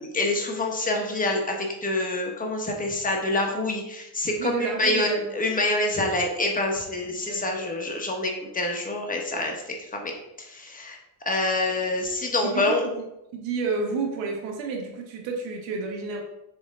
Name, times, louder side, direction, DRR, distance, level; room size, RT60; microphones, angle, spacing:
voice 1, 0.0-10.1 10.4-11.0 11.2-12.9, left 2 dB, 20° left, 1 dB, 1.3 m, -26 dB
voice 2, 4.4-5.3 7.3-7.6 12.4-13.0 13.3-16.2, right 4 dB, 90° right, 0 dB, 1.5 m, -30 dB
7.1 x 3.6 x 3.7 m, 0.89 s
cardioid pair, 110°, 44 cm